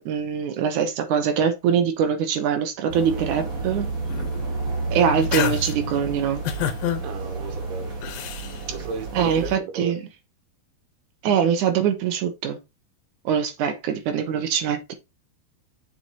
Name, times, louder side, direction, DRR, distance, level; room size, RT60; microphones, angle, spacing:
voice 1, 0.0-3.9 4.9-6.4 9.1-10.0 11.2-12.6 13.2-14.9, right 7 dB, 65° right, 2.4 m, -23 dB
sound 1, 2.9-9.6, right 3 dB, 30° right, 1.7 m, -30 dB
sound 2, 4.1-4.5 5.0-5.8 6.4-7.0 8.0-8.6, left 11 dB, 75° left, 2.6 m, -28 dB
voice 2, 7.0-7.9 8.7-9.9, right 5 dB, 90° right, 3.0 m, -35 dB
7.0 x 5.9 x 3.0 m
omnidirectional pair, 4.3 m